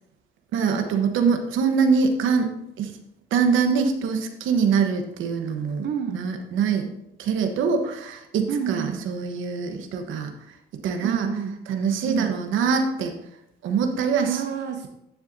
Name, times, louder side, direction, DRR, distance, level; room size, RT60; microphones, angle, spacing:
voice 1, 0.5-2.5 2.8-2.9 3.3-6.9 7.2-10.3 10.8-11.3 11.7-13.1 13.6-14.4, right 5 dB, 85° right, 5 dB, 1.1 m, -23 dB
voice 2, 5.8-6.3 8.5-9.1 11.0-11.6 12.1-12.3 14.2-14.9, right 8 dB, 65° right, 5 dB, 0.8 m, -29 dB
11.0 x 7.2 x 2.7 m, 0.83 s
cardioid pair, 90°, 20 cm